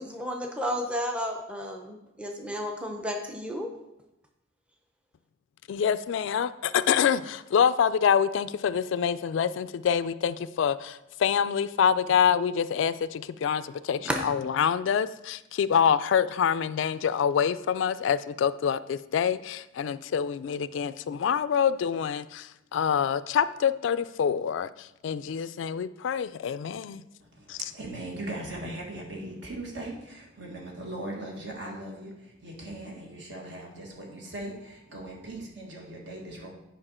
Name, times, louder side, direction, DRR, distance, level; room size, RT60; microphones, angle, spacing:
voice 1, 0.0-3.7 14.1-14.2, equal, 5° right, 2 dB, 0.6 m, -32 dB
voice 2, 5.7-27.0 27.5-27.6, left 7 dB, 70° left, 15 dB, 0.3 m, -26 dB
voice 3, 27.2-36.5, right 1 dB, 60° right, 0 dB, 1.7 m, -39 dB
8.9 x 5.2 x 4.3 m, 0.92 s
head